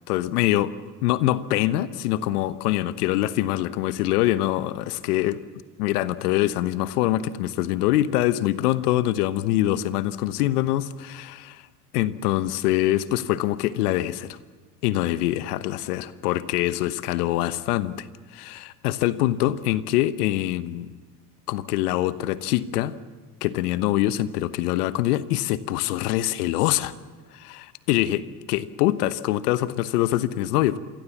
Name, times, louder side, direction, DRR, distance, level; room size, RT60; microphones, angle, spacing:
voice 1, 0.1-0.7 1.0-5.4 5.8-11.6 11.9-14.4 14.8-18.1 18.3-20.9 21.5-22.9 23.4-26.9 27.3-28.2 28.5-30.8, left 14 dB, 80° left, 15 dB, 1.1 m, -24 dB
27.0 x 23.0 x 7.2 m, 1.4 s
hypercardioid pair, 60°, 45 cm